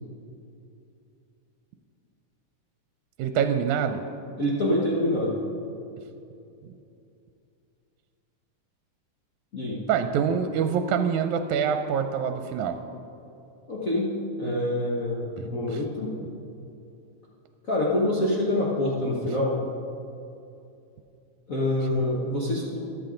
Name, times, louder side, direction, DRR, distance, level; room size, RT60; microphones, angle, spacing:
voice 1, 3.2-4.0 9.9-12.8 15.4-15.8, right 7 dB, 80° right, 7 dB, 1.9 m, -25 dB
voice 2, 4.4-5.4 9.5-9.8 13.7-16.1 17.6-19.6 21.5-22.8, left 1 dB, 65° left, -5 dB, 0.8 m, -26 dB
14.0 x 12.0 x 3.8 m, 2.7 s
omnidirectional pair, 3.5 m